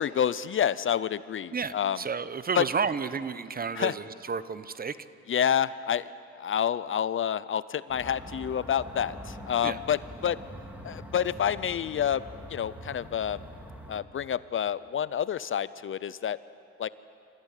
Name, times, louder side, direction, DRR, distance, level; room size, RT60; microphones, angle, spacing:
voice 1, 0.0-2.0 2.5-2.7 3.7-3.9 5.3-6.1 6.4-10.4 10.8-12.2 12.5-13.4 13.9-16.4 16.8-16.9, left 9 dB, 45° left, 17 dB, 0.5 m, -28 dB
voice 2, 1.5-5.0 9.6-9.8, right 5 dB, 30° right, 15 dB, 0.8 m, -31 dB
sound 1, 7.9-14.0, equal, 5° right, 2.9 m, -44 dB
25.5 x 15.0 x 8.2 m, 2.7 s
cardioid pair, 90°, 30 cm